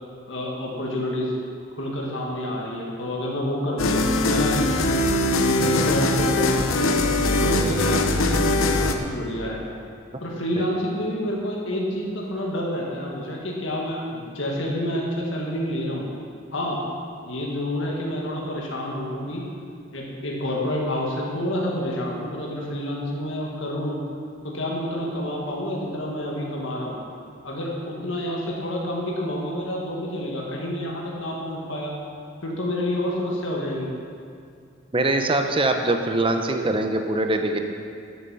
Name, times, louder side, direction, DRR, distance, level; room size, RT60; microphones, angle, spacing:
voice 1, 0.3-1.4 1.8-4.7 5.3-9.6 10.2-16.1 16.5-16.8 17.3-19.4 19.9-24.0 24.4-27.0 27.4-32.0 32.4-33.9, left 1 dB, 65° left, -2 dB, 1.9 m, -28 dB
sound 1, 3.8-8.9, left 2 dB, 85° left, 0.9 m, -21 dB
voice 2, 34.9-37.6, right 2 dB, 25° right, 5 dB, 0.8 m, -23 dB
13.5 x 8.1 x 5.7 m, 2.4 s
head